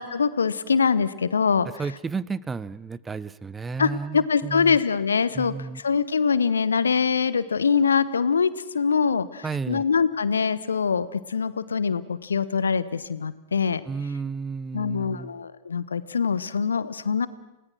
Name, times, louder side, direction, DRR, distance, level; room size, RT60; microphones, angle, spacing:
voice 1, 0.0-1.7 3.8-13.8 14.7-17.3, left 6 dB, 70° left, 17 dB, 0.9 m, -24 dB
voice 2, 1.8-4.8 5.3-5.8 9.4-9.8 13.9-15.4, right 5 dB, 15° right, 18 dB, 0.7 m, -32 dB
29.5 x 18.5 x 6.2 m, 0.97 s
figure-of-eight pair, 90°, 0 cm